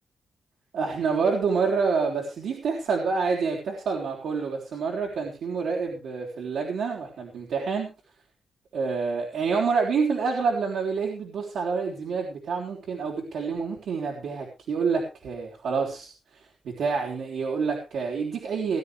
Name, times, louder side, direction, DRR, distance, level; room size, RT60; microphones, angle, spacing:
voice 1, 0.7-7.9 8.7-18.8, right 5 dB, 80° right, -1 dB, 3.7 m, -27 dB
20.0 x 10.5 x 3.4 m, 0.30 s
wide cardioid pair, 120°, 0 cm